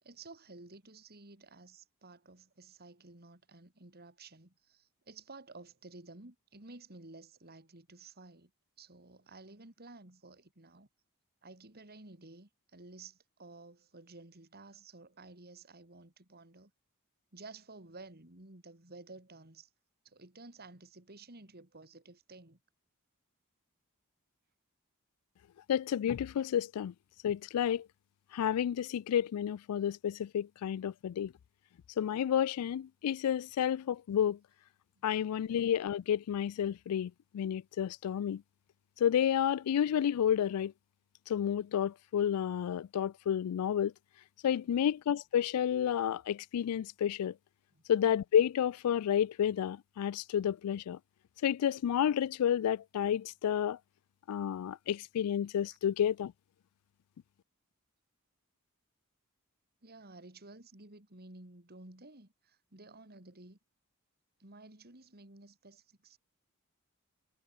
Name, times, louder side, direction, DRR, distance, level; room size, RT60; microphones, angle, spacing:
voice 1, 0.0-8.5 8.8-10.9 11.4-16.7 17.3-19.7 20.0-22.6 34.9-35.0 35.4-35.5 44.5-44.8 47.7-47.8 59.8-63.6 64.4-66.2, right 3 dB, 45° right, 3.4 m, -53 dB
voice 2, 25.7-26.9 27.2-27.9 28.3-31.3 32.0-34.4 35.0-38.4 39.0-40.7 41.3-43.9 44.4-47.3 47.9-51.0 51.4-53.8 54.3-56.3, left 9 dB, 90° left, 0.3 m, -30 dB
head